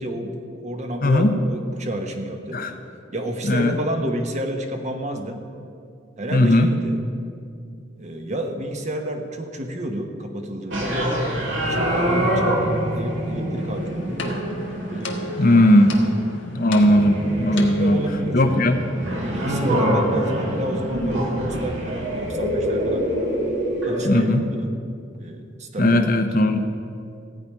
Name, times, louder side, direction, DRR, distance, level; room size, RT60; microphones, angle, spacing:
voice 1, 0.0-2.6 3.1-5.5 6.2-7.0 8.0-12.6 12.9-16.1 17.5-18.5 19.2-23.1 23.8-24.7 25.1-26.0, right 1 dB, 40° right, 4 dB, 1.1 m, -30 dB
voice 2, 1.0-1.3 2.5-2.7 3.5-3.8 6.3-6.7 15.4-15.9 16.5-18.0 18.3-18.8 19.7-20.0 24.0-24.4 25.8-26.6, left 1 dB, 50° left, 6 dB, 0.8 m, -17 dB
sound 1, 10.7-24.1, right 1 dB, 80° right, 2.5 m, -25 dB
sound 2, 13.5-18.1, left 1 dB, 70° left, 1.4 m, -35 dB
15.0 x 5.1 x 9.6 m, 2.4 s
head